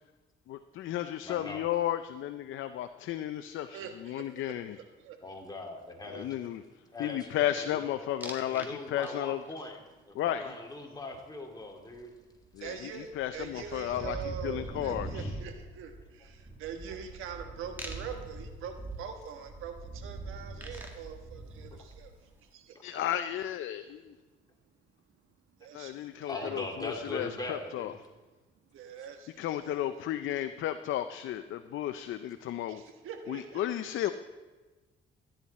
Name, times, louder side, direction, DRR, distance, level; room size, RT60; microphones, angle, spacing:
voice 1, 0.5-4.8 6.1-6.6 7.0-9.4 10.1-10.5 12.5-15.3 22.8-24.1 25.7-27.9 29.4-32.8 33.3-34.1, left 12 dB, 75° left, 10 dB, 0.5 m, -33 dB
voice 2, 1.2-1.7 5.2-6.3 6.9-7.8 8.4-9.8 10.0-12.1 26.3-28.0, left 2 dB, 20° left, 1 dB, 2.6 m, -40 dB
voice 3, 3.7-5.2 12.6-23.0 25.6-26.6 28.7-29.9 32.7-33.6, right 7 dB, 85° right, 6 dB, 1.4 m, -44 dB
sound 1, 8.2-8.7 9.0-9.5 11.9-12.0 12.3-22.3, right 2 dB, 10° right, 2.0 m, -43 dB
14.0 x 10.0 x 4.2 m, 1.3 s
cardioid pair, 75°, 20 cm